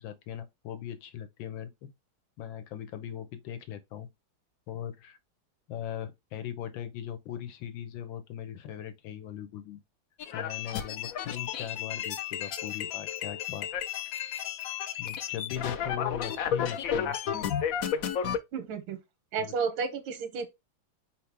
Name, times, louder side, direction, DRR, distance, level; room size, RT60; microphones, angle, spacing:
voice 1, 0.0-1.9 2.4-4.1 4.7-5.2 5.7-9.8 10.3-13.7 15.0-17.2 19.4-19.5, left 10 dB, 85° left, 1.6 m, -39 dB
sound 1, 10.2-18.4, left 8 dB, 70° left, 0.8 m, -32 dB
voice 2, 18.5-19.0 19.3-20.5, right 5 dB, 90° right, 1.6 m, -32 dB
4.5 x 3.6 x 3.3 m
omnidirectional pair, 2.1 m